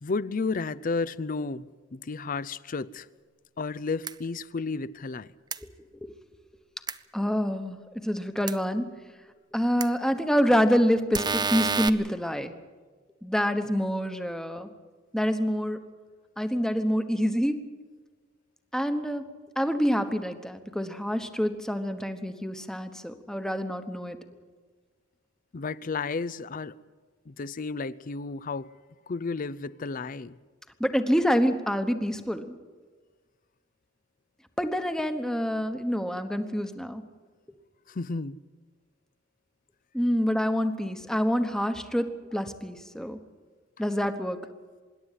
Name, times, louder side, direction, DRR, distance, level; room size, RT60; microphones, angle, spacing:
voice 1, 0.0-3.1 3.6-5.3 25.5-26.8 27.3-28.7 29.1-30.4 37.9-38.4, left 4 dB, 45° left, 0.5 m, -32 dB
sound 1, 4.0-4.1 5.5-5.6 6.9-7.0 8.5-8.6 9.8-9.9 11.1-11.9, right 5 dB, 20° right, 0.6 m, -27 dB
voice 2, 7.1-8.9 9.5-12.5 13.2-14.7 15.1-15.8 16.4-17.6 18.7-19.3 19.6-24.2 30.8-32.6 34.6-37.0 39.9-43.2 43.8-44.4, equal, 5° left, 1.1 m, -27 dB
25.5 x 11.0 x 9.9 m
head